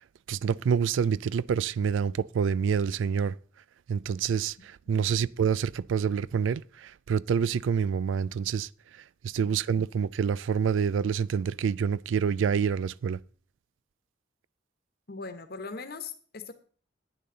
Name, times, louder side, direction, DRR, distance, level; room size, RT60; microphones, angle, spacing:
voice 1, 0.3-3.3 3.9-8.7 9.2-13.2, right 7 dB, 85° right, 0.3 m, -27 dB
voice 2, 15.1-16.5, left 4 dB, 55° left, 1.2 m, -40 dB
10.5 x 9.4 x 3.9 m
head